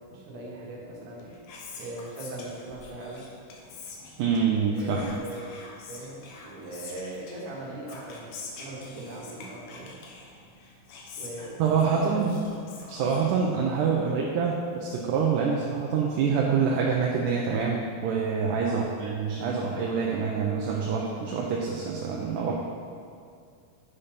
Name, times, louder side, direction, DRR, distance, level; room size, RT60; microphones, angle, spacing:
voice 1, 0.1-1.4 1.8-3.2 4.7-5.6 5.9-10.0 11.2-12.2 14.0-14.2 18.7-18.9, right 2 dB, 60° right, -4 dB, 2.3 m, -40 dB
Whispering, 1.0-13.9, left 4 dB, 75° left, 2.3 m, -46 dB
voice 2, 4.2-5.1 11.6-12.4 12.9-22.6, right 6 dB, 80° right, -2 dB, 2.0 m, -26 dB
8.7 x 4.2 x 5.1 m, 2.3 s
omnidirectional pair, 4.1 m